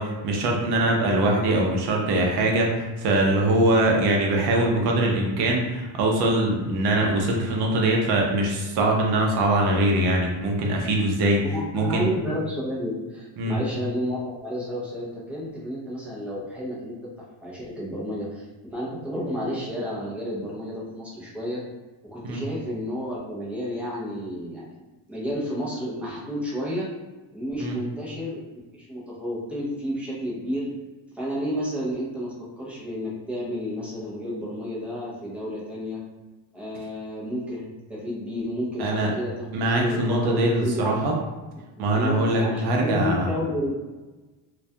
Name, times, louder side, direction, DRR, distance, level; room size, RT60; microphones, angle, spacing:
voice 1, 0.0-11.4 11.7-12.1 13.4-13.6 22.2-22.5 27.6-27.8 38.8-39.1 39.5-41.2 41.8-43.3, right 1 dB, 60° right, 0 dB, 0.6 m, -22 dB
voice 2, 11.4-17.0 17.4-21.6 22.0-24.8 25.1-26.9 27.3-28.4 28.7-30.7 31.1-36.0 36.5-39.3 39.7-40.9 41.9-43.7, equal, 5° right, -7 dB, 0.3 m, -31 dB
2.2 x 2.2 x 2.6 m, 1.2 s
cardioid pair, 155°, 44 cm